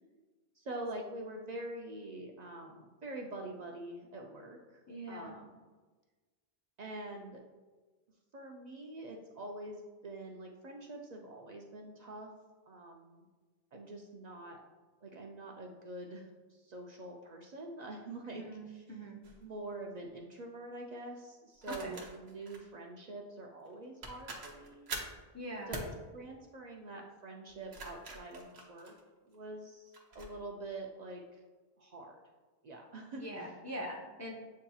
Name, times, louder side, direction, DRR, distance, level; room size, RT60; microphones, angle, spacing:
voice 1, 0.6-4.8 5.1-5.5 6.8-7.4 8.3-12.3 12.7-13.3 13.7-14.6 15.0-18.8 19.4-24.9 25.7-25.8 26.1-29.0 29.2-31.4 31.8-32.2 32.6-33.3, right 2 dB, 55° right, 0 dB, 0.5 m, -45 dB
voice 2, 4.9-5.3 18.2-19.2 21.7-22.0 25.3-25.8 33.2-34.3, equal, 30° left, -1 dB, 0.3 m, -43 dB
sound 1, 19.2-19.4 21.6-22.6 23.7-23.8 24.0-25.2 25.7-26.0 27.5-29.4 29.9-30.3, right 2 dB, 85° right, 1.1 m, -44 dB
8.1 x 2.7 x 2.3 m, 1.3 s
omnidirectional pair, 1.0 m